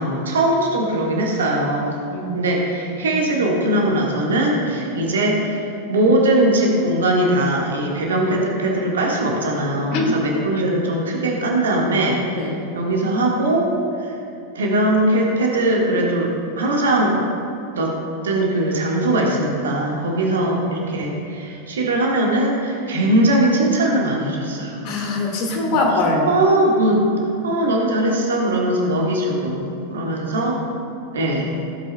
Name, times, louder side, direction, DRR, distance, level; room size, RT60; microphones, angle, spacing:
voice 1, 0.0-1.9 2.3-13.7 14.0-14.2 14.5-17.2 17.7-17.9 18.2-24.8 25.7-25.8 26.3-27.0 27.4-30.6 31.1-31.6, right 1 dB, 65° right, -1 dB, 1.6 m, -20 dB
voice 2, 24.8-26.3, left 2 dB, 45° left, 0 dB, 1.8 m, -22 dB
15.5 x 8.3 x 2.2 m, 2.6 s
figure-of-eight pair, 90°, 0 cm